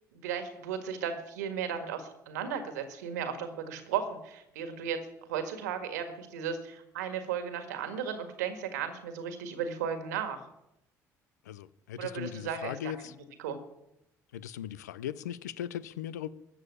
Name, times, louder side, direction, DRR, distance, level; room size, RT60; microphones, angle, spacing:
voice 1, 0.1-5.0 5.3-10.4 12.0-12.8 13.0-13.1 13.4-13.6, right 7 dB, 85° right, 1.7 m, -35 dB
voice 2, 11.4-13.1 14.3-16.3, left 10 dB, 90° left, 0.5 m, -38 dB
14.0 x 7.1 x 8.7 m
hypercardioid pair, 60°, 9 cm